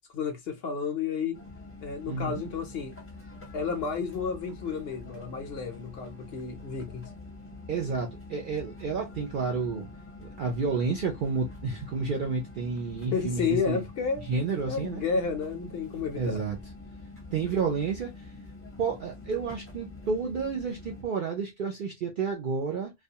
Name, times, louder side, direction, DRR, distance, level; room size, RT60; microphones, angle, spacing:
voice 1, 0.1-1.4 1.8-2.9 3.5-7.1 12.9-14.3 14.7-16.4 17.5-17.6, left 5 dB, 60° left, 0.7 m, -31 dB
sound 1, 1.3-21.0, left 2 dB, 15° left, 0.5 m, -46 dB
voice 2, 2.1-2.4 7.7-9.9 10.2-13.8 14.3-15.1 16.1-16.6 17.3-18.3 18.8-22.9, right 4 dB, 65° right, 0.5 m, -30 dB
2.3 x 2.2 x 2.7 m
omnidirectional pair, 1.3 m